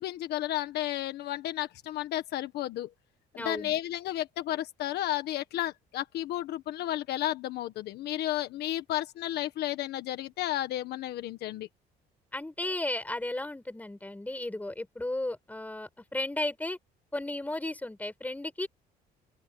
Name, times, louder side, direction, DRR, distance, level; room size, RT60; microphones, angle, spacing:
voice 1, 0.0-2.9 3.3-11.7, left 13 dB, 75° left, 1.5 m, -32 dB
voice 2, 3.4-3.8 12.3-16.8 17.1-18.7, left 1 dB, 10° left, 7.3 m, -34 dB
open air
cardioid pair, 110°, 17 cm